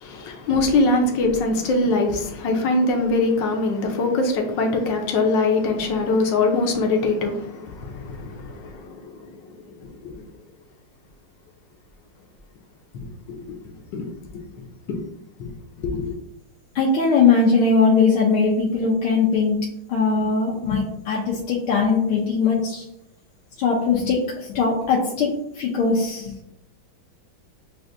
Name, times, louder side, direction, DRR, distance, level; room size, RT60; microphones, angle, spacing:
voice 1, 0.0-9.1 13.4-13.5 13.9-14.1 15.4-15.5 15.8-16.1, left 2 dB, 70° left, 2 dB, 1.3 m, -22 dB
voice 2, 16.7-19.6 19.9-22.8 23.6-26.3, left 4 dB, 85° left, -4 dB, 1.6 m, -20 dB
7.5 x 2.5 x 2.5 m, 0.79 s
omnidirectional pair, 2.3 m